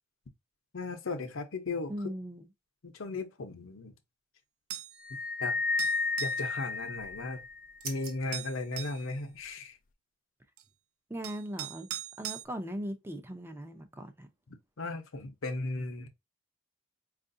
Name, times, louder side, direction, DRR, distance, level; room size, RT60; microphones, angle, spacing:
voice 1, 0.7-1.9 2.8-3.9 5.4-5.6 6.2-7.4 7.8-9.8 14.8-16.1, left 3 dB, 70° left, 0.7 m, -36 dB
voice 2, 1.9-2.5 11.1-11.9 12.2-14.3, equal, 10° right, 0.5 m, -39 dB
sound 1, 4.7-5.0 5.8-6.4 7.8-7.9 8.3-9.0 10.6-10.7 11.2-12.4, right 12 dB, 85° right, 0.3 m, -40 dB
sound 2, 5.0-7.7, left 3 dB, 40° left, 0.4 m, -32 dB
sound 3, 6.7-9.5, right 4 dB, 45° right, 0.9 m, -49 dB
4.6 x 2.5 x 2.6 m
head